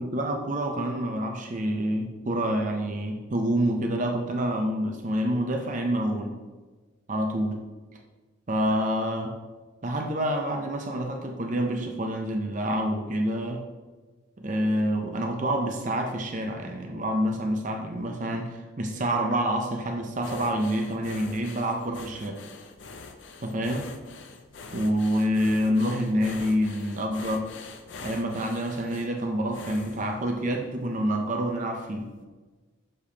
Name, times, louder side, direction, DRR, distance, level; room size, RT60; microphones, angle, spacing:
voice 1, 0.0-6.3 7.1-7.6 8.5-9.3 9.8-13.6 14.4-22.4 23.4-23.9 24.7-27.5 28.0-32.1, equal, 35° right, 2 dB, 0.5 m, -27 dB
sound 1, 20.2-30.8 31.3-31.5 31.9-32.0, left 4 dB, 60° left, 0.5 m, -44 dB
6.6 x 5.2 x 2.8 m, 1.3 s
head